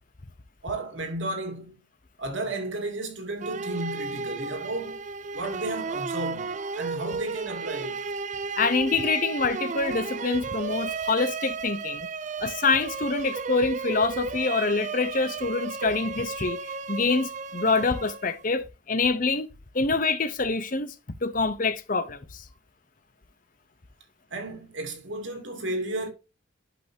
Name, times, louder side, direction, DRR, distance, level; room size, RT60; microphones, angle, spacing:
voice 1, 0.6-1.7 2.2-5.0 5.3-8.0 24.3-26.1, right 2 dB, 70° right, 2.6 m, -33 dB
sound 1, 3.4-18.5, right 5 dB, 40° right, 0.4 m, -34 dB
voice 2, 8.6-12.1 12.4-16.6 16.9-19.5 19.7-20.9 21.2-22.4, left 4 dB, 45° left, 0.8 m, -26 dB
11.5 x 5.6 x 2.8 m
head